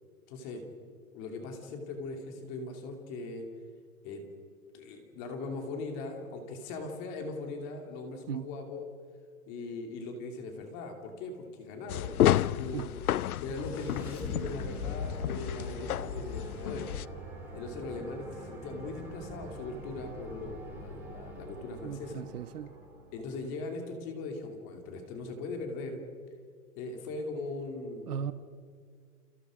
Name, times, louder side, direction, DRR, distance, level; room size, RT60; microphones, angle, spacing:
voice 1, 0.3-0.6 1.1-3.5 4.0-4.2 4.7-8.9 9.5-12.9 13.4-16.9 17.5-22.3 23.1-26.0 26.8-28.1, left 3 dB, 25° left, 4 dB, 2.6 m, -40 dB
sound 1, 11.9-17.0, left 12 dB, 75° left, 0.8 m, -31 dB
sound 2, 13.3-23.5, right 2 dB, 5° right, 3.2 m, -45 dB
voice 2, 21.8-22.8 28.1-28.3, right 8 dB, 80° right, 11 dB, 1.4 m, -37 dB
30.0 x 29.5 x 5.0 m, 2.1 s
hypercardioid pair, 180°, 45 cm